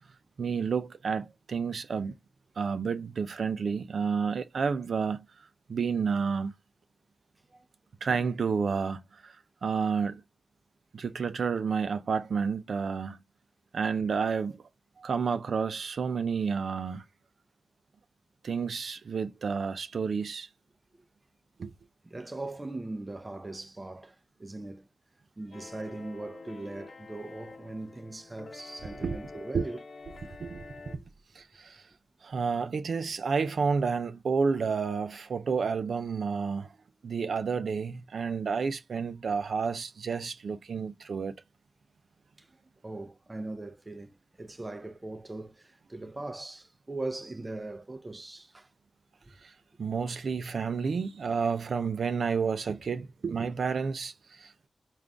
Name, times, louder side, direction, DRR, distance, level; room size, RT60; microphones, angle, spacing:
voice 1, 0.4-2.1 2.6-6.5 8.0-9.4 9.6-10.2 10.9-13.2 13.7-14.6 15.0-17.0 18.4-20.5 21.6-21.7 29.0-29.2 29.5-29.6 30.2-31.0 31.4-31.8 32.2-36.7 37.0-41.4 49.4-49.5 49.8-54.7, right 5 dB, 80° right, 0.5 m, -30 dB
voice 2, 22.0-24.9 25.4-29.8 42.4-42.5 42.8-48.7, right 2 dB, 25° right, 0.5 m, -40 dB
sound 1, 25.5-31.0, left 4 dB, 70° left, 0.8 m, -48 dB
3.7 x 2.4 x 3.4 m
wide cardioid pair, 95°, 0 cm